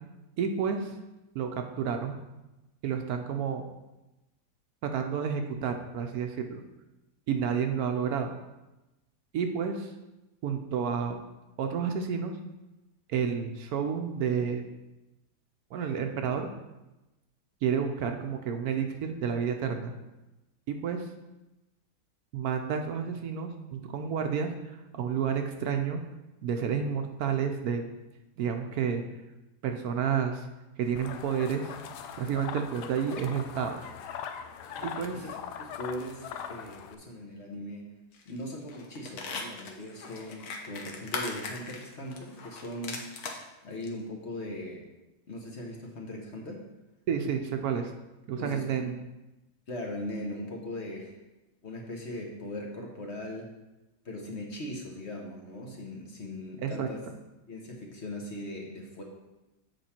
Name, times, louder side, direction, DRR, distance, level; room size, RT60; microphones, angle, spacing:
voice 1, 0.4-0.9 1.3-2.2 2.8-3.6 4.9-6.6 7.3-8.3 9.3-9.9 10.4-11.2 11.6-12.4 13.1-14.6 15.7-16.5 17.6-19.9 20.7-21.1 22.3-26.0 26.4-27.8 28.4-29.0 29.6-30.4 30.8-31.7 32.2-33.8 34.8-35.3 47.1-47.9 48.3-48.9 56.6-56.9, right 7 dB, 70° right, 5 dB, 1.1 m, -30 dB
sound 1, 31.0-37.0, left 8 dB, 80° left, 1.2 m, -41 dB
voice 2, 34.7-38.0 38.2-43.0 43.6-44.8 45.3-46.6 48.4-49.0 49.7-51.1 51.6-53.5 54.0-57.0 57.5-59.0, left 1 dB, 45° left, 0 dB, 1.3 m, -39 dB
sound 2, 38.1-38.4 38.7-43.4 43.8-43.9, left 4 dB, 65° left, 1.4 m, -39 dB
8.0 x 5.3 x 4.3 m, 1.0 s
omnidirectional pair, 1.8 m